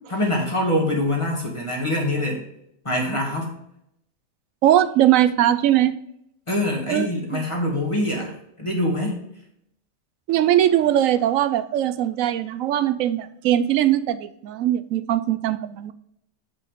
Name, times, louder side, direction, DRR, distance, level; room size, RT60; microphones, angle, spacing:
voice 1, 0.1-2.4 2.8-3.5 6.5-8.3 8.6-9.2, left 1 dB, 25° left, -1 dB, 1.9 m, -24 dB
voice 2, 4.6-6.0 6.9-7.1 7.3-7.4 10.3-15.9, right 12 dB, 90° right, 13 dB, 1.0 m, -20 dB
8.3 x 5.7 x 3.5 m, 0.76 s
omnidirectional pair, 1.4 m